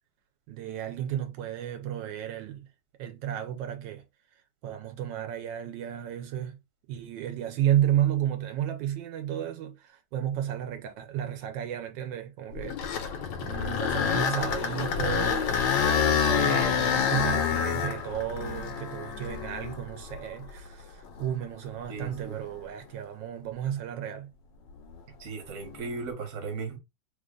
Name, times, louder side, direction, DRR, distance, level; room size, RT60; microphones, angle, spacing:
voice 1, 0.5-2.7 3.0-4.0 4.6-6.6 6.9-15.7 16.0-24.3, right 11 dB, 85° right, 1.2 m, -32 dB
sound 1, 12.5-20.6 21.2-21.3 22.0-22.2 25.7-26.0, left 7 dB, 90° left, 1.3 m, -27 dB
voice 2, 21.9-22.4 25.2-26.8, right 4 dB, 50° right, 1.2 m, -36 dB
3.2 x 2.3 x 3.7 m
omnidirectional pair, 2.0 m